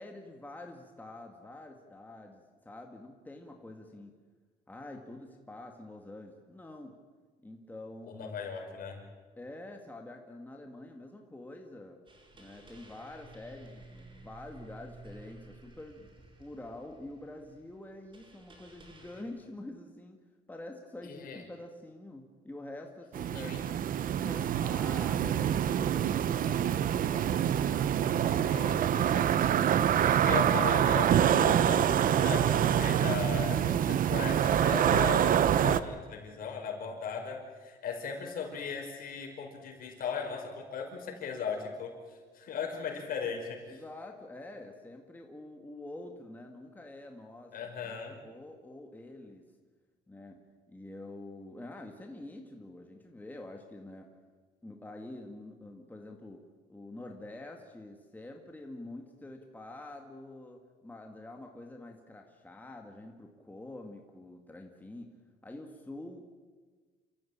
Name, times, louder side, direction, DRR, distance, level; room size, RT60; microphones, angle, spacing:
voice 1, 0.0-4.2 4.7-7.0 7.4-8.4 9.4-12.0 12.3-16.1 16.4-23.7 24.1-29.1 43.7-49.4 50.1-50.4 50.7-54.1 54.6-56.4 56.7-65.1 65.4-66.2, left 2 dB, 10° left, 2 dB, 2.1 m, -47 dB
voice 2, 8.1-9.0 21.0-21.4 23.3-23.6 28.4-29.3 30.0-43.6 47.5-48.2, left 6 dB, 60° left, 2 dB, 5.5 m, -38 dB
sound 1, 12.1-19.2, right 1 dB, 30° right, 4.7 m, -53 dB
sound 2, 23.1-35.8, right 10 dB, 55° right, 0.9 m, -26 dB
28.5 x 14.5 x 8.8 m, 1.5 s
cardioid pair, 110°, 17 cm